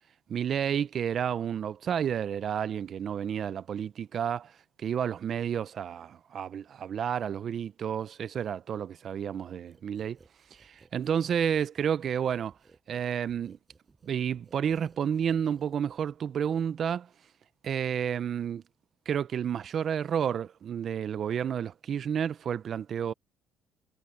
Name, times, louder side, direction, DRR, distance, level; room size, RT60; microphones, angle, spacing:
voice 1, 0.3-4.5 4.8-10.2 10.6-12.5 12.9-13.6 14.0-17.1 17.6-18.6 19.1-23.1, right 8 dB, 50° right, 0.8 m, -30 dB
sound 1, 9.7-16.2, right 4 dB, 25° right, 5.4 m, -60 dB
cardioid pair, 95°, 0 cm